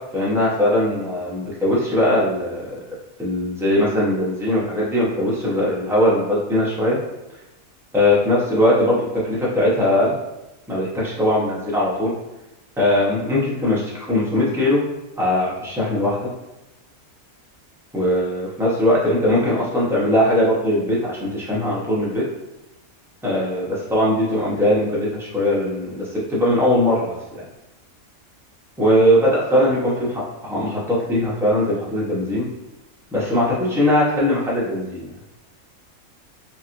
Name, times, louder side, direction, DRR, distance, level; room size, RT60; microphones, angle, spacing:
voice 1, 0.1-2.7 3.2-7.0 7.9-10.2 10.7-12.2 12.8-14.8 15.2-16.2 17.9-22.2 23.2-27.5 28.8-29.9 30.4-32.5 33.1-35.1, left 1 dB, 5° right, -8 dB, 0.3 m, -20 dB
2.9 x 2.8 x 2.5 m, 0.95 s
omnidirectional pair, 1.5 m